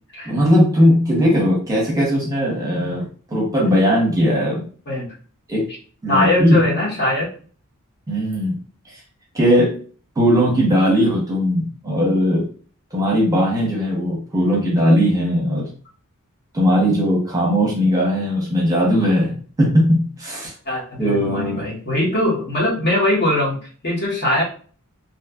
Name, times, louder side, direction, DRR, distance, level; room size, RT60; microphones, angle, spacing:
voice 1, 0.2-3.1 3.3-4.6 5.5-5.7 6.0-6.6 8.1-8.6 9.3-9.8 10.2-12.5 12.9-15.7 16.5-20.5 21.0-21.6, equal, 15° right, -3 dB, 0.8 m, -18 dB
voice 2, 6.1-7.3 20.6-23.6 23.8-24.4, left 1 dB, 50° left, -4 dB, 1.0 m, -21 dB
2.7 x 2.4 x 2.3 m, 0.41 s
head